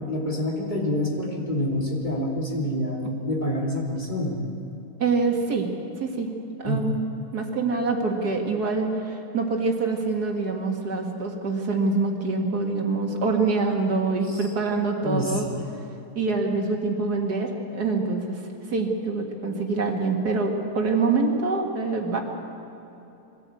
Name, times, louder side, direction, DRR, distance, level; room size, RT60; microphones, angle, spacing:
voice 1, 0.0-4.4 6.6-6.9 14.3-14.5 15.0-15.6, left 1 dB, 30° left, -2 dB, 2.9 m, -27 dB
voice 2, 5.0-5.7 6.0-6.3 6.6-7.0 7.3-15.5 16.2-18.4 18.7-22.2, right 3 dB, 85° right, 2 dB, 2.6 m, -25 dB
22.5 x 15.5 x 8.5 m, 2.9 s
omnidirectional pair, 1.6 m